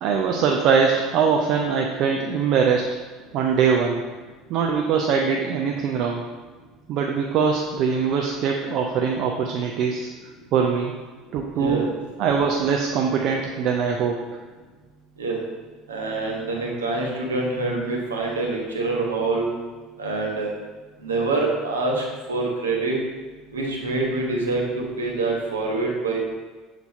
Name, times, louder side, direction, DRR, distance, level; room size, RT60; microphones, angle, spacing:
voice 1, 0.0-2.9 3.3-4.0 4.5-6.2 6.9-10.1 10.5-10.9 11.3-11.9 12.2-14.2, right 6 dB, 50° right, 1 dB, 0.5 m, -22 dB
voice 2, 11.6-11.9 15.2-15.4 15.9-19.5 20.0-20.5 21.0-23.0 23.5-26.2, right 3 dB, 75° right, -2 dB, 1.2 m, -25 dB
6.9 x 4.0 x 4.3 m, 1.3 s
figure-of-eight pair, 65°, 0 cm